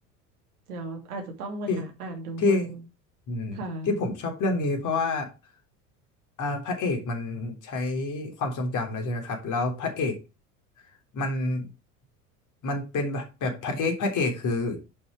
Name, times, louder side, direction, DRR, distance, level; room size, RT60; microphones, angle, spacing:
voice 1, 0.7-2.8 3.5-4.0, right 2 dB, 70° right, 3.2 m, -36 dB
voice 2, 2.4-2.7 3.3-5.3 6.4-10.2 11.1-11.7 12.6-14.8, left 3 dB, 40° left, 3.5 m, -28 dB
11.0 x 5.8 x 4.9 m
figure-of-eight pair, 70°, 46 cm